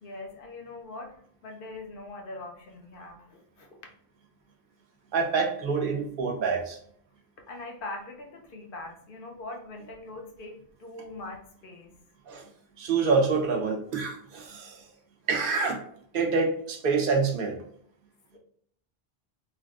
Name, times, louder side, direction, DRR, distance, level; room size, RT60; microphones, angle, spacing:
voice 1, 0.0-3.7 7.5-11.9 18.3-18.4, left 2 dB, 65° left, 2 dB, 0.7 m, -42 dB
voice 2, 5.1-6.8 12.3-12.5 12.8-14.9 15.3-15.8 16.1-17.6, right 4 dB, 65° right, 2 dB, 0.7 m, -26 dB
3.4 x 2.4 x 2.3 m, 0.64 s
omnidirectional pair, 1.0 m